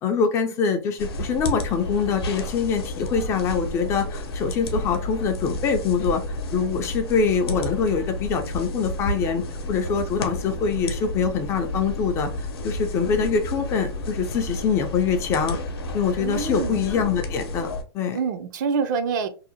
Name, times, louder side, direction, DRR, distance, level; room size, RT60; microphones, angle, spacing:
voice 1, 0.0-6.2 6.5-15.6 15.9-17.7 17.9-18.2, left 6 dB, 20° left, 0.3 m, -24 dB
sound 1, 1.0-17.8, left 1 dB, 80° left, 0.7 m, -31 dB
voice 2, 16.2-16.8 18.1-19.3, right 5 dB, 50° right, 0.4 m, -26 dB
2.7 x 2.0 x 2.7 m
hypercardioid pair, 145°, 13 cm